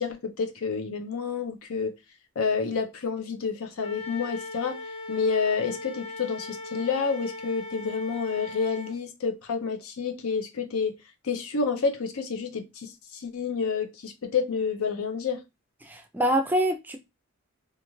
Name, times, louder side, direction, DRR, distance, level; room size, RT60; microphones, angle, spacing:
voice 1, 0.0-1.9 2.4-4.8 5.1-10.9 11.2-15.4, left 5 dB, 90° left, 0.6 m, -29 dB
Wind instrument woodwind instrument, 3.8-9.0, left 3 dB, 30° left, 0.7 m, -39 dB
voice 2, 15.8-17.0, equal, 10° right, 0.3 m, -25 dB
2.5 x 2.4 x 3.0 m
head